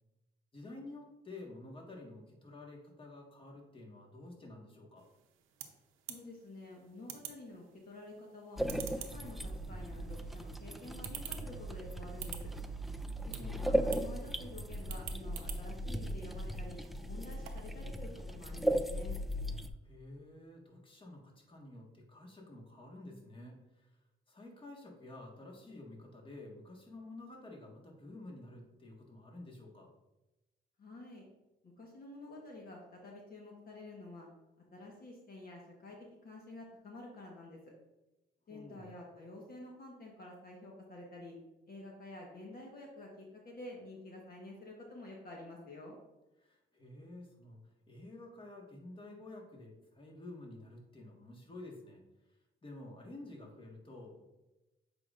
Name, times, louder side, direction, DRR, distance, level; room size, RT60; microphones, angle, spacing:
voice 1, 0.5-5.1 13.3-13.6 19.6-24.0 24.3-29.9 38.5-38.9 46.4-52.0 52.3-54.3, left 2 dB, 25° left, -1 dB, 1.6 m, -51 dB
sound 1, 5.0-17.8, right 10 dB, 85° right, 0.8 m, -51 dB
voice 2, 6.1-8.6 9.1-12.5 13.3-16.8 17.0-19.2 30.8-31.3 31.6-34.3 34.7-36.0 36.2-37.6 38.5-41.4 41.7-46.0, left 2 dB, 50° left, -1 dB, 1.3 m, -49 dB
sound 2, 8.6-19.7, right 1 dB, ahead, 0.3 m, -37 dB
7.5 x 5.0 x 2.5 m, 1.0 s
cardioid pair, 90°, 20 cm